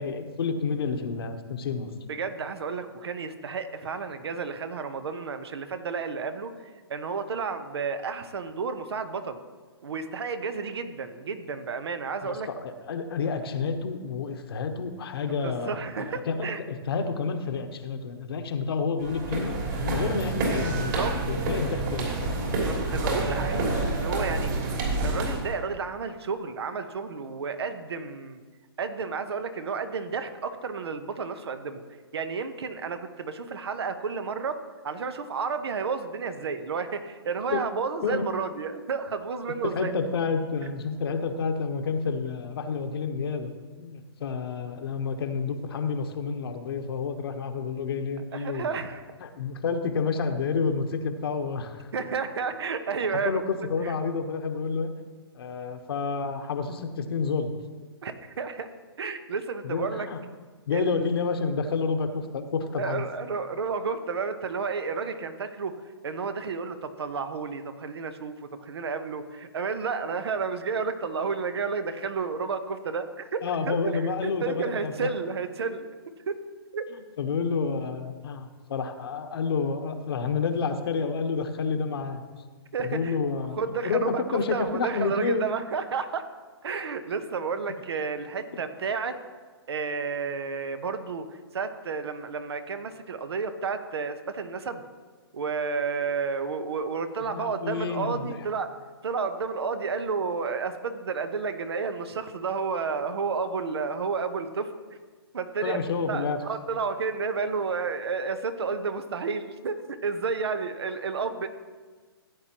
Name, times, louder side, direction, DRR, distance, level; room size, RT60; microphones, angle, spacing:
voice 1, 0.0-1.9 12.2-21.0 21.2-22.5 37.5-37.6 38.0-38.3 39.6-43.5 43.8-48.8 49.2-51.9 53.1-54.9 55.3-57.6 59.6-60.2 60.7-63.0 73.4-75.1 76.9-82.2 82.8-83.6 83.8-85.5 97.2-98.3 105.6-106.4, left 5 dB, 65° left, 6 dB, 1.1 m, -29 dB
voice 2, 2.1-6.5 6.9-9.4 9.8-12.5 15.3-16.6 20.7-21.1 22.6-24.5 25.0-28.4 28.8-31.8 32.1-39.9 48.3-49.0 51.9-53.4 53.8-53.9 58.0-58.7 59.0-60.1 60.7-61.1 62.8-65.7 66.0-75.9 76.3-76.4 76.7-76.8 82.7-83.2 83.5-86.3 86.6-89.2 89.7-91.3 91.5-94.8 95.3-98.7 99.0-104.7 105.3-105.8 106.1-111.5, right 5 dB, 70° right, 9 dB, 1.0 m, -31 dB
sound 1, 19.0-25.5, right 2 dB, 50° right, 3.3 m, -28 dB
15.5 x 8.7 x 3.0 m, 1.4 s
hypercardioid pair, 140°, 14 cm